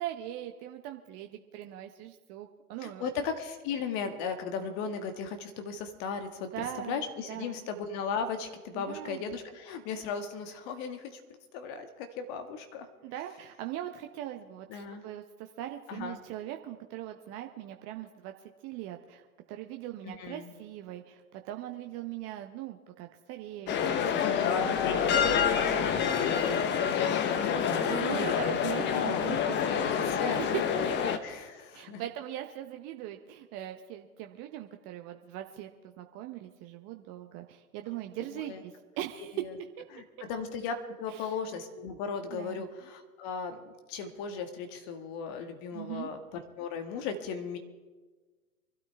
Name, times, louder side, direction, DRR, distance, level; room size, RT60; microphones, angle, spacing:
voice 1, 0.0-3.1 6.5-7.0 7.3-7.6 8.7-9.2 13.0-18.3 18.6-24.8 25.6-26.1 26.4-26.9 27.8-29.9 30.2-31.2 31.7-35.7 36.0-39.4 41.1-41.3 42.3-42.7 45.7-46.1, right 13 dB, 35° right, 5 dB, 0.9 m, -40 dB
voice 2, 2.8-11.2 11.5-12.9 14.7-15.0 15.9-16.2 20.0-20.5 24.1-25.2 26.9-27.1 28.1-28.3 28.9-29.3 29.9-30.4 31.2-32.0 38.3-38.6 39.3-39.5 39.9-47.6, left 5 dB, 40° left, 7 dB, 1.8 m, -36 dB
sound 1, 23.7-31.2, left 7 dB, 25° left, 1.0 m, -27 dB
24.5 x 12.5 x 3.4 m, 1.3 s
hypercardioid pair, 110°, 45 cm